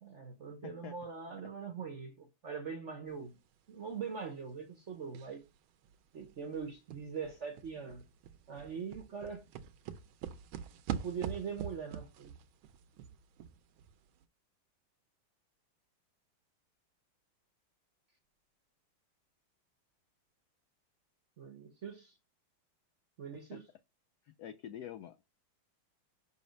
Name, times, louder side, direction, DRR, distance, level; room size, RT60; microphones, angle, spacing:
voice 1, 0.0-3.3 3.7-5.4 6.1-8.0 8.5-9.4 10.9-12.3 21.4-22.1 23.2-23.6, right 6 dB, 55° right, 0.8 m, -42 dB
voice 2, 0.6-0.9 1.4-1.5 23.5-23.6 24.2-25.2, left 10 dB, 85° left, 0.8 m, -47 dB
sound 1, 5.1-5.5 5.8-5.9 6.2-14.0 14.2-14.3, right 8 dB, 80° right, 1.4 m, -44 dB
5.6 x 4.2 x 5.2 m
omnidirectional pair, 2.3 m